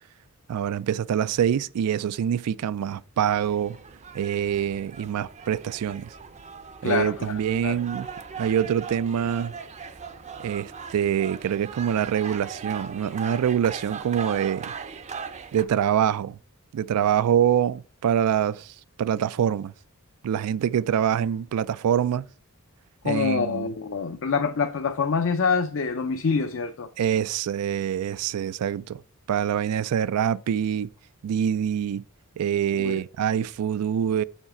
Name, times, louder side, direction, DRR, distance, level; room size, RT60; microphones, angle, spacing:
voice 1, 0.5-3.8 4.1-6.1 6.8-8.1 8.4-9.6 10.4-14.7 15.5-16.4 16.7-19.7 20.2-22.3 23.0-23.7 27.0-29.0 29.3-30.9 31.2-32.0 32.4-34.2, right 9 dB, 85° right, 0.3 m, -25 dB
sound 1, 3.3-15.6, right 6 dB, 30° right, 0.5 m, -39 dB
voice 2, 6.8-7.8 23.0-26.9 32.8-33.0, left 5 dB, 60° left, 0.5 m, -26 dB
7.1 x 5.7 x 4.3 m
head